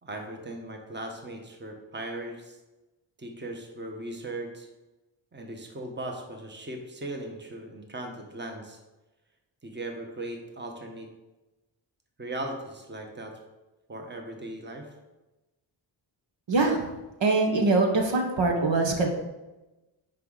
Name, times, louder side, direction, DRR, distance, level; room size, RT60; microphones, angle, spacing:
voice 1, 0.0-2.6 3.2-4.7 5.3-8.8 9.6-11.1 12.2-13.4 13.9-14.9, right 1 dB, 20° right, 2 dB, 1.4 m, -38 dB
voice 2, 16.5-16.9 17.2-19.1, right 3 dB, 60° right, 2 dB, 1.6 m, -23 dB
9.5 x 5.1 x 4.1 m, 1.1 s
cardioid pair, 70°, 49 cm